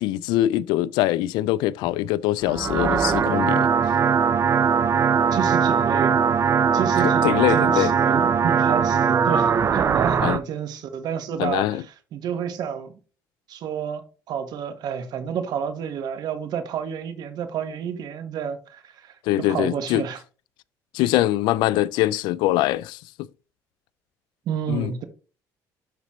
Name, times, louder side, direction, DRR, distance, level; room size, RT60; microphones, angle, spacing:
voice 1, 0.0-3.9 7.2-7.9 10.2-10.4 11.4-11.8 19.3-20.1 20.9-23.0 24.7-24.9, left 15 dB, 85° left, 0.4 m, -23 dB
sound 1, 2.4-10.4, right 6 dB, 40° right, 0.6 m, -20 dB
voice 2, 5.3-6.2 6.7-11.8 12.1-12.9 13.5-14.0 14.3-19.1 19.5-20.2 24.5-25.0, right 8 dB, 65° right, 1.4 m, -29 dB
12.0 x 4.1 x 3.1 m
cardioid pair, 110°, 7 cm